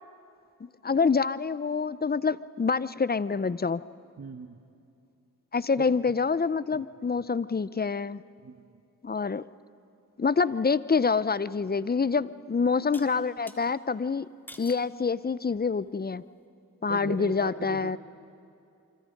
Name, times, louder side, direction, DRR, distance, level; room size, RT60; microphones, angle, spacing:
voice 1, 0.8-3.8 5.5-8.2 9.0-9.5 10.2-14.3 14.6-16.2 16.8-18.0, left 5 dB, 25° left, 17 dB, 0.6 m, -26 dB
voice 2, 4.2-4.6 5.7-5.9 6.7-6.8 8.4-8.6 16.9-18.0, right 4 dB, 45° right, 5 dB, 1.2 m, -39 dB
sound 1, 11.6-11.7 12.9-13.6 14.5-14.9 15.5-15.9, equal, 5° left, 2.1 m, -48 dB
27.5 x 25.0 x 5.3 m, 2.6 s
cardioid pair, 45°, 35 cm